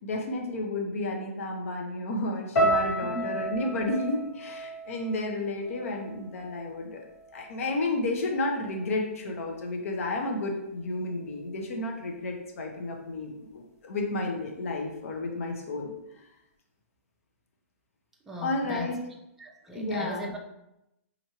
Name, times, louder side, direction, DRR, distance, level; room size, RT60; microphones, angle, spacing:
voice 1, 0.0-7.0 7.3-15.9 18.4-19.0 19.7-20.3, left 2 dB, 70° left, 1 dB, 0.7 m, -32 dB
sound 1, 2.6-6.8 7.0-7.8 8.4-8.6, right 1 dB, 85° left, 1.4 m, -32 dB
voice 2, 3.0-3.4 18.3-19.0 19.4-20.4, equal, 5° right, -2 dB, 0.4 m, -38 dB
4.4 x 2.6 x 2.9 m, 0.87 s
hypercardioid pair, 140°, 8 cm